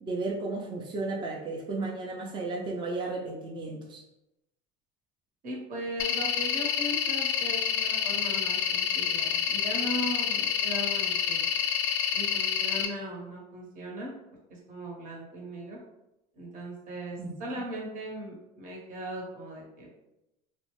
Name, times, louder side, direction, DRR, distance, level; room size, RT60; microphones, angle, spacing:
voice 1, 0.0-4.0 17.2-17.3, right 3 dB, 25° right, -1 dB, 0.5 m, -34 dB
voice 2, 5.4-11.4 12.1-14.1 14.5-15.8 16.4-19.9, right 1 dB, 45° right, -2 dB, 1.0 m, -38 dB
sound 1, 6.0-12.9, left 8 dB, 75° left, 0.4 m, -28 dB
2.5 x 2.1 x 3.0 m, 0.91 s
supercardioid pair, 100°, 19 cm